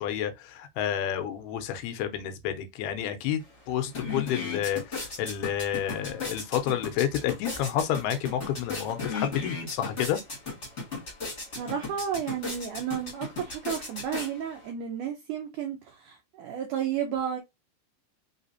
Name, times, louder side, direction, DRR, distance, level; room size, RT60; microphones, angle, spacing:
voice 1, 0.0-3.4 3.7-10.2, left 10 dB, 90° left, 2.7 m, -30 dB
sound 1, 3.4-3.5 3.8-14.7, left 4 dB, 30° left, 1.2 m, -36 dB
voice 2, 11.6-17.4, right 8 dB, 85° right, 1.8 m, -32 dB
5.7 x 3.4 x 2.7 m
omnidirectional pair, 4.6 m